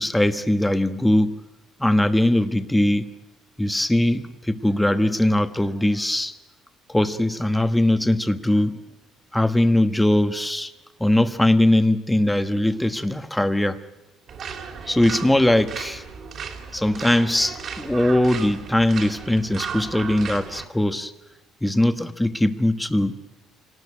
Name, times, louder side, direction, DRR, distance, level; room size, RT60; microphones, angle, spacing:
voice 1, 0.0-1.4 1.8-3.1 3.6-6.4 6.9-8.8 9.3-10.7 11.0-13.8 14.9-16.0 16.7-21.1 21.6-23.2, left 1 dB, 5° left, 9 dB, 1.2 m, -20 dB
sound 1, 14.3-20.7, right 6 dB, 45° right, 2.9 m, -35 dB
27.0 x 19.0 x 9.9 m, 1.0 s
cardioid pair, 140°, 0 cm